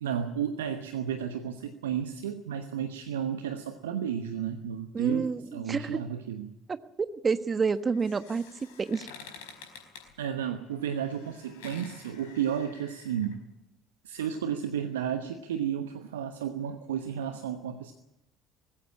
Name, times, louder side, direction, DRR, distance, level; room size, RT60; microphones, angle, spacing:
voice 1, 0.0-6.5 10.2-13.4 14.0-17.9, right 8 dB, 80° right, 8 dB, 1.1 m, -33 dB
voice 2, 4.9-6.0 7.2-8.4 8.8-9.1, right 5 dB, 30° right, 11 dB, 1.4 m, -28 dB
sound 1, 7.7-13.3, left 5 dB, 70° left, 4.6 m, -50 dB
20.5 x 16.0 x 8.8 m, 0.93 s
figure-of-eight pair, 55°, 0 cm